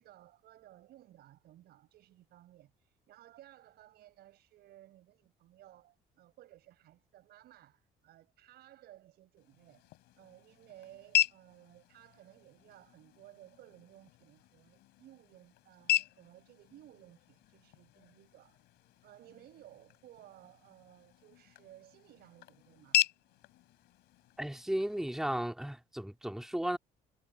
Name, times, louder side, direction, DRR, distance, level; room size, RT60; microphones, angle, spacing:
voice 1, 0.0-9.8 10.2-18.6 19.0-23.1, right 14 dB, 70° right, 7.6 m, -58 dB
sound 1, 9.4-25.4, left 13 dB, 90° left, 3.0 m, -38 dB
voice 2, 24.4-26.8, right 1 dB, 5° right, 2.2 m, -35 dB
cardioid pair, 110°, 17 cm